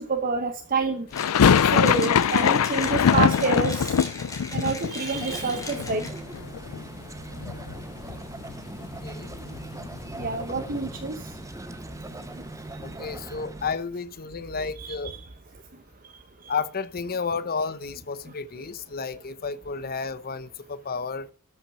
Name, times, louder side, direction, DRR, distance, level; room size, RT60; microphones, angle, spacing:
voice 1, 0.1-1.1 1.7-3.9 4.5-6.1 10.2-11.1 14.8-15.2, right 4 dB, 40° right, 1.0 m, -27 dB
sound 1, 1.1-7.1 7.3-8.2 8.4-8.5 8.8-11.0, left 7 dB, 80° left, 0.4 m, -23 dB
Mechanisms, 1.1-6.4, left 2 dB, 15° left, 3.2 m, -38 dB
sound 2, 5.1-13.8, right 2 dB, 15° right, 0.8 m, -40 dB
voice 2, 12.8-15.1 16.5-21.3, left 5 dB, 45° left, 0.8 m, -32 dB
13.0 x 5.9 x 5.6 m
head